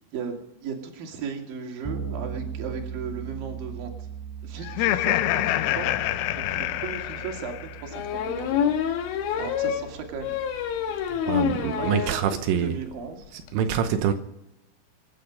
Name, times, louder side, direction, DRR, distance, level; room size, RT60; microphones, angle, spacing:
voice 1, 0.1-4.1 4.4-5.9 6.3-8.7 9.4-10.4 11.3-13.3, right 5 dB, 50° right, 3.6 m, -36 dB
Bass guitar, 1.8-11.5, right 7 dB, ahead, 4.2 m, -39 dB
Laughter, 4.6-7.9, left 15 dB, 90° left, 3.4 m, -26 dB
sound 1, 6.2-6.3 6.6-6.7 7.9-12.2 12.6-12.7 12.9-13.0 13.2-13.5, left 8 dB, 70° left, 2.5 m, -27 dB
voice 2, 11.3-12.8 13.3-14.1, right 8 dB, 85° right, 3.5 m, -25 dB
25.0 x 10.5 x 5.2 m
omnidirectional pair, 5.8 m